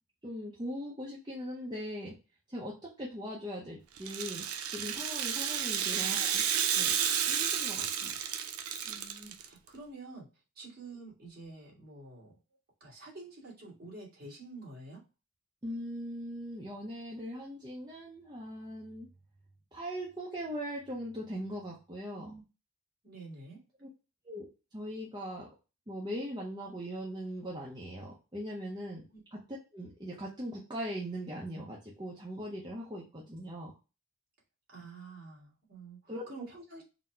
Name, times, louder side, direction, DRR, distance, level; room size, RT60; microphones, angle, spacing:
voice 1, 0.2-2.1 2.5-4.4 4.7-6.4 6.8-6.9 7.3-8.1 15.6-19.1 19.7-22.3 23.8-23.9 24.2-24.5 24.7-25.5 25.9-29.4 29.7-33.7 36.1-36.2, equal, 20° right, -4 dB, 0.6 m, -40 dB
Rattle (instrument), 4.0-9.5, right 8 dB, 90° right, 0.5 m, -31 dB
voice 2, 8.8-10.3 10.5-12.3 12.8-15.0 22.1-22.4 23.0-23.6 29.1-29.2 34.7-36.8, right 3 dB, 45° right, -4 dB, 1.7 m, -48 dB
4.0 x 2.1 x 4.3 m, 0.31 s
head